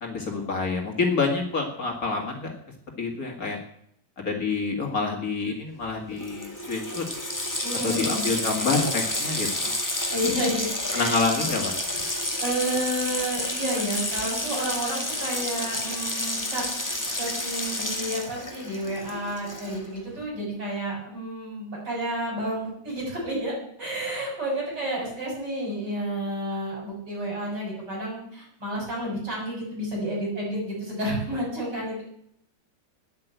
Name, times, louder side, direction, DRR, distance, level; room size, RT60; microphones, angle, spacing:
voice 1, 0.0-2.5 3.0-3.6 4.2-7.0 7.8-9.7 10.9-11.7, left 4 dB, 50° left, 1 dB, 2.5 m, -27 dB
Water tap faucet, 5.9-6.0 6.2-20.0, left 1 dB, 10° left, 1.9 m, -30 dB
voice 2, 7.6-8.3 10.1-11.5 11.8-16.6 17.2-23.5 23.8-32.1, right 1 dB, 65° right, -3 dB, 7.3 m, -31 dB
11.0 x 9.8 x 9.1 m, 0.70 s
omnidirectional pair, 2.0 m